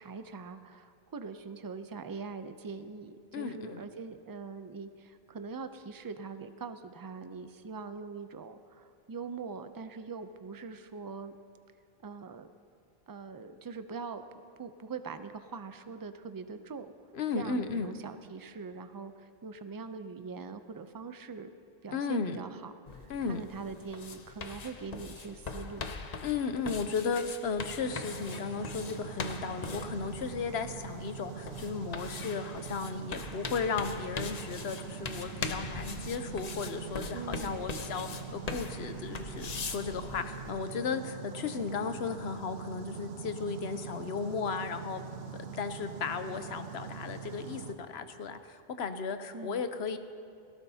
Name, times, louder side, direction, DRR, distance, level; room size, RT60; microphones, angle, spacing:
voice 1, 0.0-11.3 12.0-12.5 13.1-14.2 14.6-16.9 17.3-21.5 21.8-25.9 37.1-37.7 49.3-49.6, right 5 dB, 35° right, 10 dB, 0.4 m, -42 dB
voice 2, 3.3-3.8 17.1-17.9 21.9-22.4 23.1-23.4 26.2-45.1 45.4-50.0, left 5 dB, 85° left, 9 dB, 1.0 m, -35 dB
sound 1, 22.9-40.5, left 4 dB, 45° left, 0.7 m, -42 dB
sound 2, 27.8-47.7, right 6 dB, 80° right, 1.0 m, -43 dB
17.5 x 17.5 x 2.8 m, 2.3 s
omnidirectional pair, 1.0 m